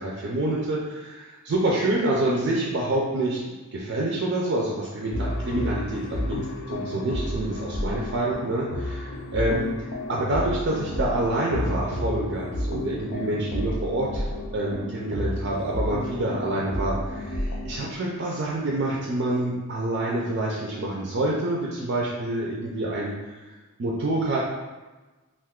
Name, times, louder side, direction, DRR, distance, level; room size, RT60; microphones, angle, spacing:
voice 1, 0.0-3.4 3.7-6.4 6.7-9.7 10.1-14.2 14.5-23.3 23.8-24.4, right 1 dB, 50° right, -4 dB, 0.4 m, -27 dB
sound 1, 5.1-17.9, left 1 dB, 80° left, 0.5 m, -31 dB
2.5 x 2.3 x 3.5 m, 1.2 s
head